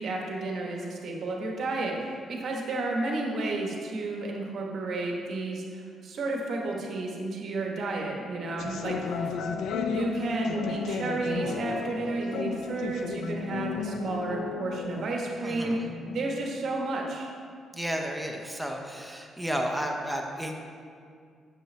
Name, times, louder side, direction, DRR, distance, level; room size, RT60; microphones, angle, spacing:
voice 1, 0.0-9.3 9.9-17.3, right 2 dB, 60° right, 0 dB, 1.1 m, -32 dB
sound 1, 8.6-16.6, left 5 dB, 75° left, 0.4 m, -34 dB
voice 2, 15.4-15.8 17.7-20.5, equal, 5° right, 1 dB, 0.7 m, -32 dB
7.5 x 5.4 x 3.3 m, 2.2 s
cardioid pair, 90°, 0 cm